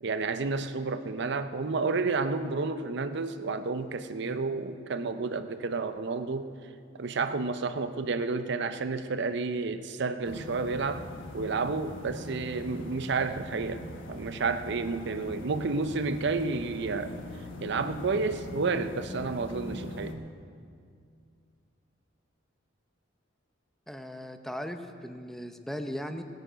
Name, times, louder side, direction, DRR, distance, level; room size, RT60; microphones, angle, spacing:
voice 1, 0.0-6.5 6.9-11.1 11.3-17.1 17.6-20.2, right 4 dB, 65° right, 10 dB, 0.6 m, -31 dB
sound 1, 10.2-20.1, left 1 dB, 80° left, 1.2 m, -42 dB
voice 2, 23.9-26.2, equal, ahead, 7 dB, 0.7 m, -38 dB
19.5 x 9.2 x 5.1 m, 2.3 s
head